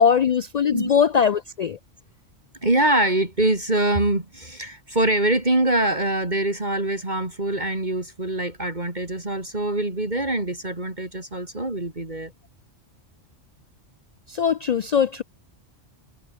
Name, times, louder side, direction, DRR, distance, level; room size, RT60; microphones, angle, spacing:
voice 1, 0.0-1.8 14.3-15.2, left 7 dB, 70° left, 0.4 m, -20 dB
voice 2, 2.6-12.3, right 1 dB, 40° right, 3.4 m, -24 dB
omnidirectional pair, 1.2 m